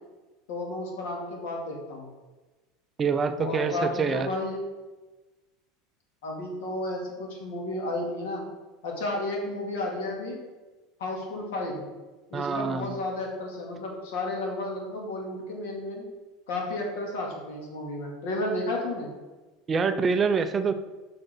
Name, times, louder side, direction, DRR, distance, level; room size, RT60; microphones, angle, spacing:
voice 1, 0.5-2.1 3.4-4.6 6.2-8.4 8.8-10.4 11.0-11.9 12.3-16.1 16.5-19.1, left 2 dB, 80° left, 0 dB, 2.2 m, -32 dB
voice 2, 3.0-4.3 12.3-13.0 19.7-20.7, right 5 dB, 20° right, 10 dB, 0.4 m, -26 dB
5.8 x 5.2 x 5.9 m, 1.2 s
supercardioid pair, 170°, 0 cm